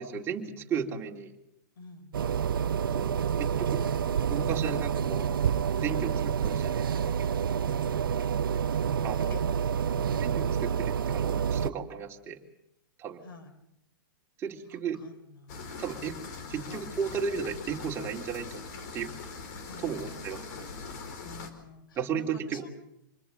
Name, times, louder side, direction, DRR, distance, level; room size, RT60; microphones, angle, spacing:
voice 1, 0.0-1.4 2.9-3.8 4.3-5.5 5.8-6.9 9.0-9.3 10.2-12.4 13.0-13.2 14.4-15.0 15.8-16.2 16.5-18.6 18.9-19.1 19.8-20.7 22.0-22.7, right 7 dB, 20° right, 0 dB, 3.4 m, -34 dB
voice 2, 1.8-2.2 9.3-9.4 9.9-10.2 13.2-13.6 14.9-15.7 16.6-16.9 19.7-20.8 21.2-22.7, left 4 dB, 80° left, 10 dB, 4.7 m, -49 dB
sound 1, 2.1-11.7, right 7 dB, 85° right, 0.8 m, -28 dB
sound 2, 15.5-21.5, left 4 dB, 50° left, 4.8 m, -42 dB
27.0 x 21.5 x 7.0 m, 0.81 s
hypercardioid pair, 140°, 11 cm